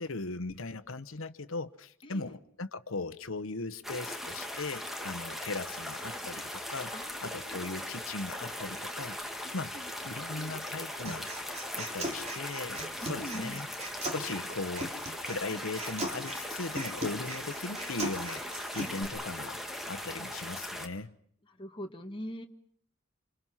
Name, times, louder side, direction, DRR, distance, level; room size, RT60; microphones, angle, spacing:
voice 1, 0.0-6.9 7.2-9.2 9.5-9.7 10.0-11.3 11.8-13.7 14.1-19.6 19.9-21.2, left 3 dB, 80° left, 1.1 m, -38 dB
voice 2, 2.0-2.4 6.9-7.9 9.4-9.9 10.3-10.6 13.0-13.6 21.5-22.5, equal, 25° left, 1.6 m, -43 dB
sound 1, 3.8-20.9, left 1 dB, ahead, 1.7 m, -39 dB
Human voice, 11.0-19.0, right 1 dB, 35° right, 3.3 m, -39 dB
26.5 x 26.0 x 5.7 m
head